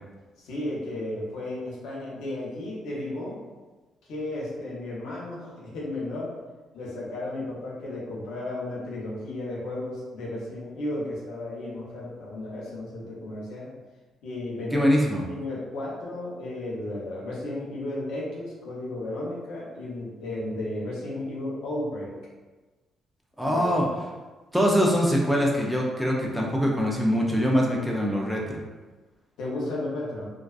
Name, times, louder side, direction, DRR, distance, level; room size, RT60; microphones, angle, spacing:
voice 1, 0.4-3.4 4.1-6.4 6.7-13.7 14.2-14.9 15.3-22.1 23.4-23.7 29.4-30.3, left 1 dB, 85° left, -4 dB, 0.7 m, -34 dB
voice 2, 14.7-15.2 23.4-23.9 24.5-28.6, equal, 5° right, -2 dB, 0.5 m, -23 dB
2.4 x 2.3 x 2.3 m, 1.2 s
cardioid pair, 90°, 0 cm